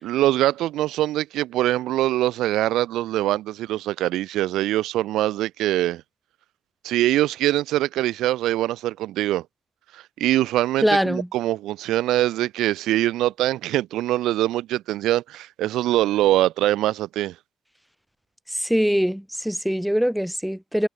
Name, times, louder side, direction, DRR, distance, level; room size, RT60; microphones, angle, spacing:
voice 1, 0.0-6.0 6.8-9.4 9.9-17.3, right 15 dB, 90° right, 3.7 m, -23 dB
voice 2, 10.8-11.3 18.5-20.9, equal, ahead, 7.4 m, -22 dB
cardioid pair, 90°, 0 cm